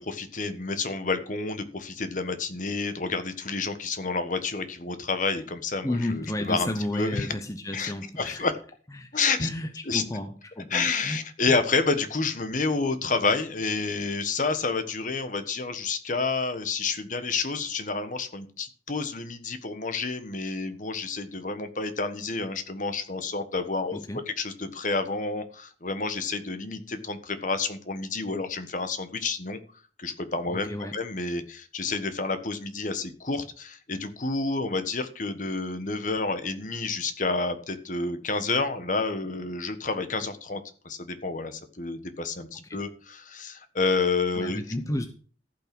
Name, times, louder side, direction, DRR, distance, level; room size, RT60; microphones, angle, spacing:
voice 1, 0.0-7.3 7.7-8.5 9.1-9.5 9.8-10.0 10.7-24.0 24.3-29.6 30.0-44.6, left 4 dB, 45° left, 1.4 m, -29 dB
voice 2, 5.8-8.5 9.0-9.1 9.4-10.3 10.6-11.2 11.5-11.6 23.9-24.2 30.5-31.0 42.7-42.8 44.4-45.1, left 1 dB, 20° left, 0.9 m, -32 dB
14.5 x 6.0 x 6.1 m
head